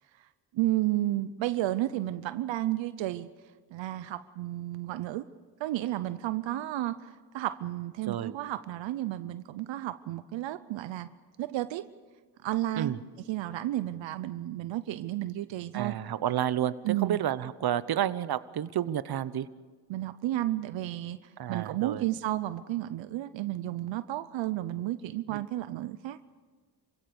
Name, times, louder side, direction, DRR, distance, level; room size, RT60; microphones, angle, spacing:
voice 1, 0.5-3.3 3.7-5.3 5.6-11.1 11.4-11.8 12.4-12.9 13.3-15.9 16.8-17.2 19.9-21.2 21.5-26.2, right 15 dB, 85° right, 14 dB, 0.7 m, -32 dB
voice 2, 15.7-16.7 17.0-19.5 21.4-22.0 25.3-25.4, right 10 dB, 55° right, 16 dB, 0.9 m, -30 dB
27.0 x 16.5 x 7.0 m, 1.5 s
cardioid pair, 65°, 44 cm